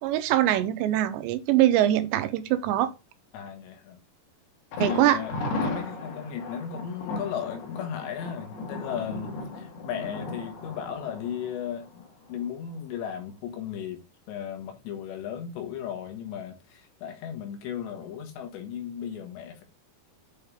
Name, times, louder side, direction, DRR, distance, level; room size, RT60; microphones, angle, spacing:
voice 1, 0.0-2.9 4.8-5.2, right 13 dB, 85° right, 3.1 m, -23 dB
voice 2, 3.3-4.0 4.8-5.3 5.6-19.6, left 8 dB, 80° left, 3.7 m, -36 dB
Thunder, 4.7-12.5 12.8-12.9 13.3-13.4, left 3 dB, 65° left, 3.7 m, -35 dB
8.3 x 5.1 x 3.5 m
omnidirectional pair, 5.0 m